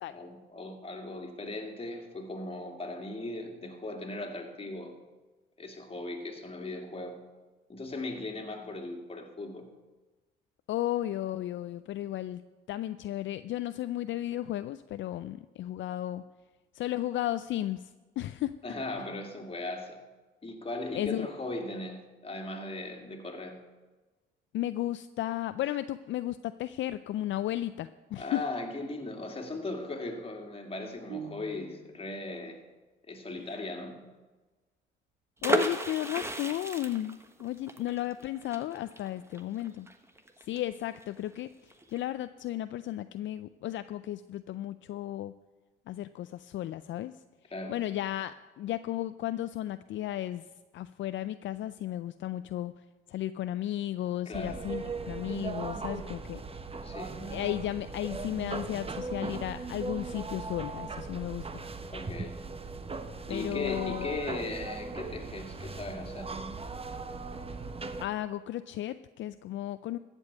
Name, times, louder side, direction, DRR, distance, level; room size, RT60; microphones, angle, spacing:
voice 1, 0.1-5.0 5.6-7.2 7.7-9.7 18.6-20.0 20.4-23.6 28.2-32.6 33.1-34.0 47.5-47.8 54.3-54.6 56.8-57.2 61.9-62.4 63.3-66.3, left 2 dB, 25° left, 3 dB, 2.3 m, -38 dB
voice 2, 10.7-12.4 12.7-16.2 16.7-18.5 20.9-21.3 24.5-28.4 33.4-33.6 35.4-39.9 40.4-45.3 45.9-47.1 47.7-50.5 50.7-56.4 57.2-61.6 63.3-64.2 68.0-70.0, left 13 dB, 65° left, 12 dB, 0.4 m, -34 dB
sound 1, 31.1-32.1, right 7 dB, 60° right, 3.5 m, -43 dB
sound 2, 35.4-41.0 41.3-41.4 41.7-42.0, right 2 dB, 10° right, 1.2 m, -33 dB
sound 3, 54.3-68.1, right 3 dB, 25° right, 1.0 m, -38 dB
14.5 x 5.4 x 8.1 m, 1.2 s
supercardioid pair, 70°, 21 cm